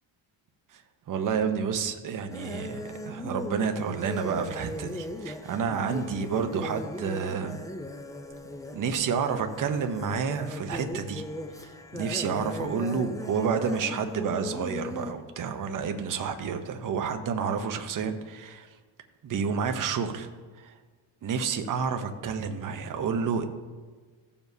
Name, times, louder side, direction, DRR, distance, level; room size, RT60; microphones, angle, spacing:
voice 1, 1.1-7.6 8.7-11.2 11.9-18.7 19.2-20.3 20.6-20.7 21.2-23.5, right 6 dB, 40° right, 6 dB, 0.8 m, -29 dB
sound 1, 2.3-15.1, left 1 dB, 10° left, 0.4 m, -38 dB
15.0 x 7.0 x 2.7 m, 1.4 s
cardioid pair, 135°, 48 cm